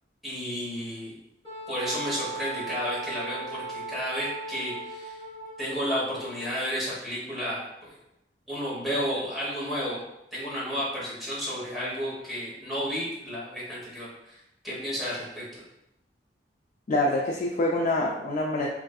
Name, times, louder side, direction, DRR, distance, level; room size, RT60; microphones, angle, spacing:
voice 1, 0.2-1.1 1.7-5.2 5.6-7.9 8.5-10.0 10.3-14.4 14.6-15.6, equal, ahead, -9 dB, 1.1 m, -32 dB
Wind instrument woodwind instrument, 1.4-6.6, right 3 dB, 25° left, 1.2 m, -38 dB
voice 2, 16.9-18.7, left 1 dB, 45° left, -2 dB, 0.3 m, -25 dB
3.3 x 2.5 x 2.3 m, 0.85 s
head